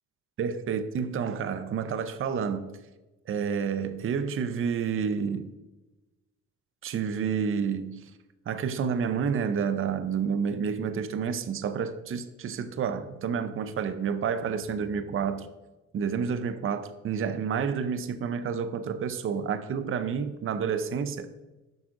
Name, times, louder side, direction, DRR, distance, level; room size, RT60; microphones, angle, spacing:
voice 1, 0.4-2.8 3.3-5.5 6.8-8.0 8.5-15.5 15.9-21.3, right 6 dB, 45° right, 0.6 m, -29 dB
7.8 x 5.8 x 2.5 m
cardioid pair, 90°, 30 cm